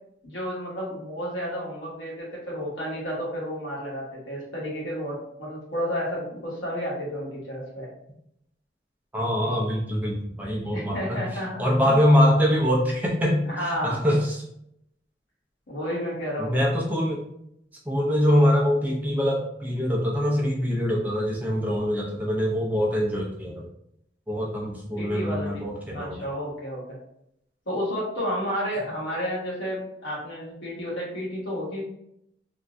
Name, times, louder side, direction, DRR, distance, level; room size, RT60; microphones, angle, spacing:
voice 1, 0.2-7.9 10.7-12.0 13.5-14.0 15.7-16.6 25.0-25.6 25.9-27.0 27.7-31.8, equal, 80° left, -5 dB, 1.2 m, -31 dB
voice 2, 9.1-14.4 16.4-17.2 17.9-23.6 24.3-26.2, equal, 10° right, -4 dB, 0.5 m, -24 dB
3.5 x 2.1 x 2.5 m, 0.77 s
head